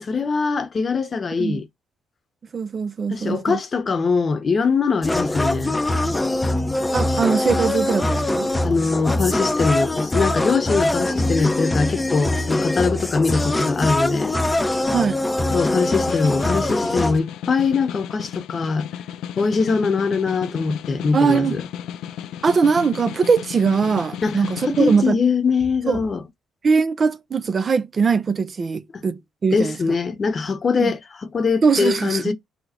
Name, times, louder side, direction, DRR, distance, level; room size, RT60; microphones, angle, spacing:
voice 1, 0.0-1.6 3.1-5.8 8.6-14.3 15.5-18.9 19.4-21.6 24.2-26.2 28.9-29.0 29.5-32.3, left 4 dB, 40° left, 0.9 m, -22 dB
voice 2, 2.5-3.6 6.9-8.5 14.9-15.2 21.1-21.6 22.4-25.2 25.9-26.0 26.6-29.8 30.8-30.9 31.6-32.3, right 5 dB, 40° right, 0.5 m, -21 dB
sound 1, 5.0-17.2, left 1 dB, 15° left, 0.6 m, -22 dB
Snare drum, 15.4-25.1, left 10 dB, 85° left, 0.4 m, -34 dB
4.1 x 2.1 x 4.3 m
cardioid pair, 85°, 0 cm